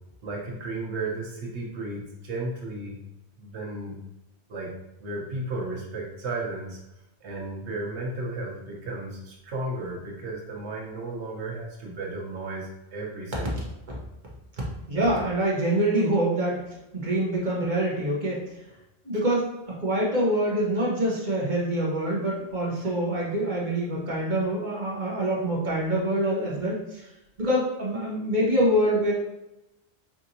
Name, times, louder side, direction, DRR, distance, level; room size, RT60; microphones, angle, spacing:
voice 1, 0.2-3.0 3.4-4.0 4.5-4.7 5.0-6.8 7.2-13.5, right 2 dB, 80° right, -2 dB, 1.2 m, -34 dB
voice 2, 14.9-18.5 19.0-27.0 27.4-29.1, right 1 dB, 45° right, -4 dB, 1.1 m, -25 dB
4.9 x 2.5 x 2.8 m, 0.92 s
omnidirectional pair, 1.1 m